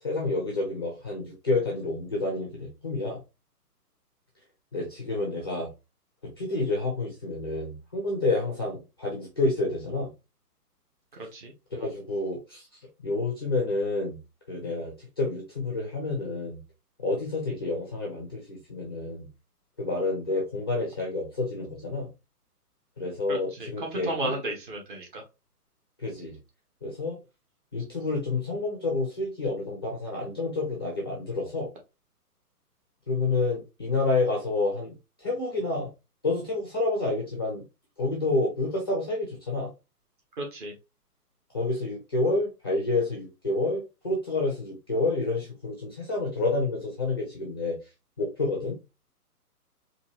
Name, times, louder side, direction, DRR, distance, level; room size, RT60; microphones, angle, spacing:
voice 1, 0.0-3.2 4.7-5.7 6.2-10.1 11.2-11.3 11.7-12.7 13.0-14.2 14.5-16.6 17.0-19.3 19.8-22.1 23.0-24.4 26.0-26.4 26.8-27.2 27.7-31.7 33.1-35.9 36.2-37.6 38.0-39.7 41.5-47.8 48.2-48.8, left 2 dB, 15° left, -1 dB, 0.5 m, -29 dB
voice 2, 23.3-25.2 40.4-40.7, right 2 dB, 35° right, 0 dB, 1.4 m, -33 dB
4.4 x 2.6 x 2.9 m, 0.26 s
figure-of-eight pair, 135°, 47 cm